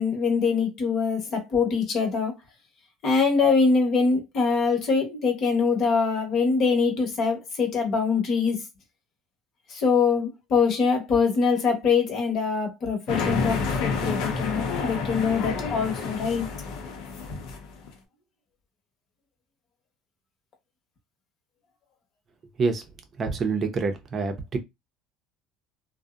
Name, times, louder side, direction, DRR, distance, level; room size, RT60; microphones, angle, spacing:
voice 1, 0.0-2.3 3.0-8.6 9.7-16.5, left 5 dB, 45° left, 1.0 m, -23 dB
sound 1, 13.1-17.9, left 4 dB, 75° left, 0.7 m, -29 dB
voice 2, 23.2-24.6, right 4 dB, 35° right, 0.6 m, -26 dB
2.6 x 2.0 x 2.4 m
cardioid pair, 120°, 0 cm